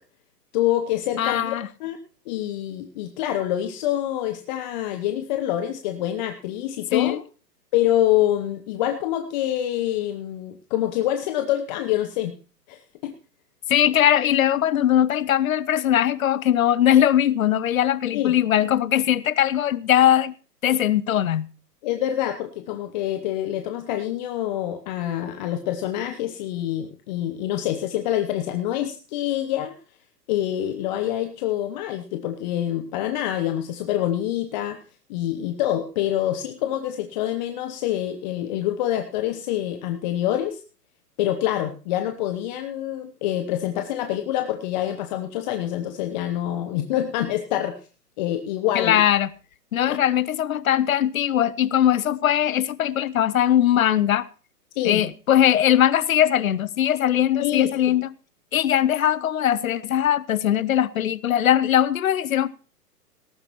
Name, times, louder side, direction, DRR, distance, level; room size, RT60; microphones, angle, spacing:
voice 1, 0.5-2.0 2.3-7.2 7.7-12.3 12.7-13.1 18.1-18.3 21.8-29.7 30.3-34.8 35.1-40.6 41.2-47.8 48.2-49.0 49.9-50.0 54.8-55.0 57.4-57.9, left 12 dB, 30° left, 0.9 m, -26 dB
voice 2, 1.2-1.7 6.9-7.2 13.7-20.3 20.6-21.5 48.7-49.3 49.7-54.2 54.8-58.1 58.5-62.5, left 11 dB, 60° left, 0.7 m, -20 dB
18.5 x 14.0 x 3.0 m
figure-of-eight pair, 120°, 48 cm